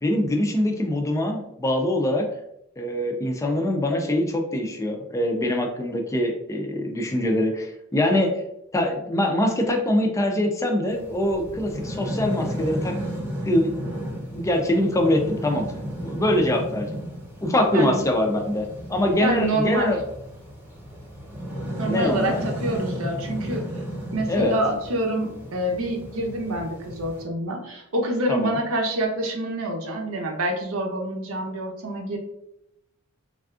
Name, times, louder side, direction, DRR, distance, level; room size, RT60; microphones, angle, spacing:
voice 1, 0.0-2.3 2.8-8.3 8.7-12.9 13.4-13.8 14.3-15.7 16.0-17.0 17.4-20.0 21.9-22.5 24.3-24.5 28.3-28.6, left 1 dB, 15° left, 3 dB, 0.3 m, -23 dB
sound 1, 10.9-27.2, equal, 10° right, 0.8 m, -34 dB
voice 2, 19.2-19.9 21.8-23.7 24.1-32.2, right 1 dB, 85° right, 2 dB, 0.7 m, -26 dB
3.3 x 2.4 x 2.4 m, 0.80 s
head